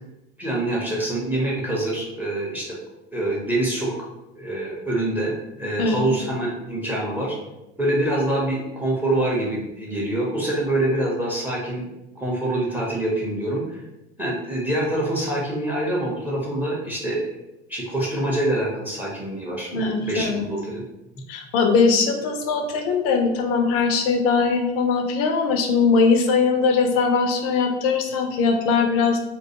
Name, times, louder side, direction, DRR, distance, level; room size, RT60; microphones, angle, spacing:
voice 1, 0.4-2.6 3.1-3.9 4.4-7.3 7.8-11.8 12.2-13.8 14.2-17.2 17.7-20.8, right 1 dB, 5° right, -4 dB, 0.6 m, -25 dB
voice 2, 19.7-20.5 21.3-29.2, left 4 dB, 45° left, 5 dB, 0.5 m, -20 dB
2.2 x 2.2 x 2.8 m, 0.96 s
figure-of-eight pair, 60°, 34 cm